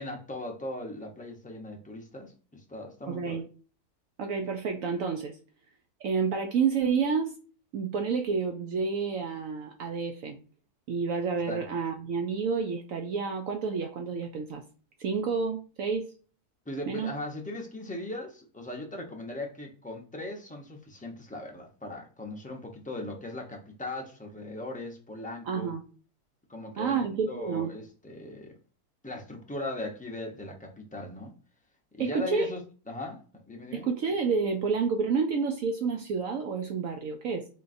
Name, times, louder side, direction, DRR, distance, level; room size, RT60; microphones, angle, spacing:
voice 1, 0.0-3.4 11.5-11.6 16.7-25.7 26.5-28.5 29.0-31.3 32.0-32.6 32.9-33.9, left 1 dB, 10° left, 0.4 m, -38 dB
voice 2, 3.1-3.4 4.2-5.4 6.0-7.4 7.7-10.4 10.9-14.6 15.0-16.1 16.9-17.1 25.5-25.8 26.8-27.7 32.0-32.5 33.7-37.5, right 5 dB, 65° right, 0.9 m, -29 dB
3.8 x 3.6 x 2.5 m
omnidirectional pair, 1.6 m